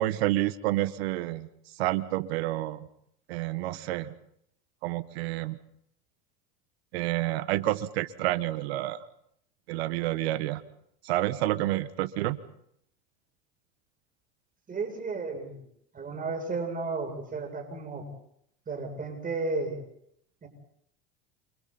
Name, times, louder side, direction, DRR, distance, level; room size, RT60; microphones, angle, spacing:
voice 1, 0.0-1.5 1.8-2.9 3.3-4.1 4.8-5.6 6.9-9.0 9.7-10.6 11.0-12.4, right 15 dB, 80° right, 13 dB, 1.5 m, -29 dB
voice 2, 14.7-15.6 15.9-18.1 18.7-19.8 20.4-20.5, right 3 dB, 25° right, 3 dB, 7.8 m, -33 dB
29.0 x 26.5 x 4.3 m, 0.70 s
supercardioid pair, 100°, 31 cm